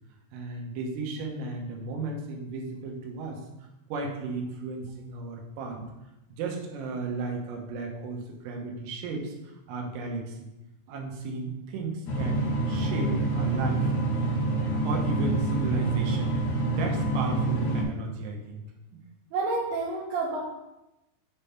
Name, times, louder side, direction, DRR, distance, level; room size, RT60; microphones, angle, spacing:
voice 1, 0.3-5.9 6.3-10.5 10.9-13.9 14.8-16.4 16.6-18.6 18.9-19.0, right 3 dB, 90° right, 1 dB, 3.7 m, -35 dB
sound 1, 12.1-17.8, right 2 dB, 75° left, 1.7 m, -26 dB
voice 2, 19.3-20.4, right 3 dB, 70° right, -6 dB, 3.2 m, -29 dB
8.1 x 3.6 x 5.6 m, 0.93 s
omnidirectional pair, 5.8 m